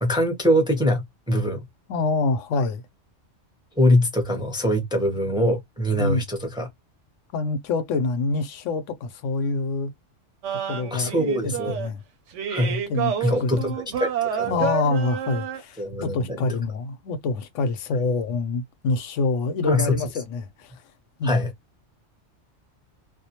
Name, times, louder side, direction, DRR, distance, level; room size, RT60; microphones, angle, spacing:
voice 1, 0.0-1.6 3.8-6.7 10.9-11.8 12.5-12.8 13.2-13.7 14.0-14.6 15.8-16.4 19.6-20.0 21.2-21.5, equal, 5° right, 0.5 m, -23 dB
voice 2, 1.9-2.8 6.0-6.2 7.3-9.9 10.7-11.1 11.4-12.0 12.9-13.8 14.5-20.8 21.2-21.5, left 3 dB, 90° left, 0.9 m, -26 dB
sound 1, 10.4-11.9 12.3-15.6, right 9 dB, 85° right, 1.0 m, -29 dB
2.4 x 2.1 x 2.8 m
omnidirectional pair, 1.2 m